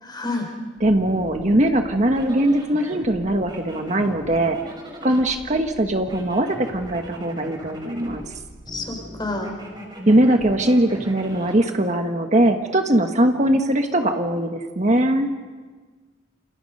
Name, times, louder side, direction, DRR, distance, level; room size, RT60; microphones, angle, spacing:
voice 1, 0.0-0.5 8.7-9.5, left 2 dB, 20° left, 2 dB, 5.1 m, -29 dB
sound 1, 0.8-11.6, equal, 25° right, 6.5 m, -40 dB
voice 2, 0.8-4.6 5.0-8.4 10.1-15.3, right 1 dB, 40° right, 5 dB, 1.4 m, -20 dB
29.5 x 28.0 x 5.5 m, 1.4 s
head